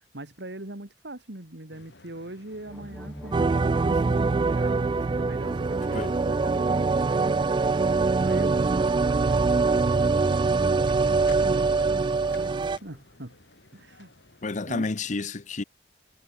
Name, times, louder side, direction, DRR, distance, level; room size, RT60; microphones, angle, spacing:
voice 1, 0.0-10.5 11.1-13.4 13.7-14.1 14.7-14.9, right 1 dB, 75° right, 3.1 m, -41 dB
sound 1, 1.7-14.9, left 3 dB, 80° left, 3.3 m, -54 dB
sound 2, 2.5-13.1, equal, ahead, 1.1 m, -44 dB
sound 3, 3.3-12.8, right 4 dB, 25° right, 0.3 m, -23 dB
voice 2, 14.4-15.6, left 3 dB, 45° left, 0.8 m, -30 dB
head